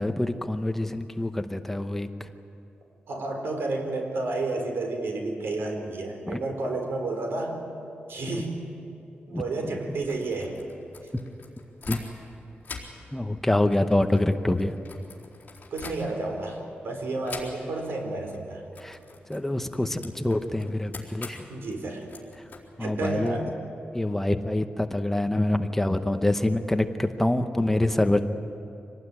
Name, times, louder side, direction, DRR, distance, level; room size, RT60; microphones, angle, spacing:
voice 1, 0.0-2.3 6.3-6.4 9.3-9.7 11.9-12.0 13.1-14.7 18.8-19.0 19.3-21.5 22.8-23.4 23.9-28.2, left 1 dB, 10° left, 7 dB, 0.9 m, -26 dB
voice 2, 3.1-7.6 8.1-8.6 9.3-10.6 15.7-18.6 21.5-22.1 22.8-23.5, right 2 dB, 85° right, 3 dB, 4.4 m, -31 dB
sound 1, 9.9-12.3 12.6-16.4 17.2-17.9 18.2-18.4 18.7-23.3, left 4 dB, 45° left, 4.1 m, -44 dB
25.5 x 18.5 x 9.9 m, 2.8 s
wide cardioid pair, 165°, 4 cm